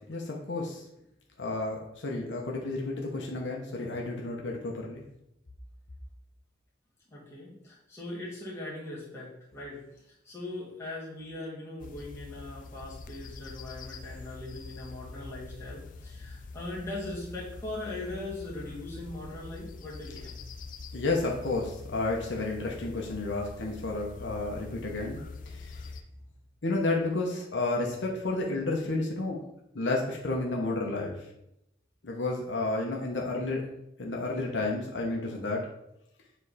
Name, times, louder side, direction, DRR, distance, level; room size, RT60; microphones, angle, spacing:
voice 1, 0.1-0.8 1.4-5.0 20.9-25.9 26.6-29.4 29.7-31.2 32.0-33.6 34.0-35.7, left 2 dB, 70° left, -1 dB, 1.0 m, -31 dB
voice 2, 7.1-9.8 10.1-20.4, left 2 dB, 15° left, -7 dB, 2.0 m, -40 dB
sound 1, 11.8-26.0, left 3 dB, 45° left, 0.4 m, -44 dB
7.2 x 3.3 x 4.2 m, 0.82 s
head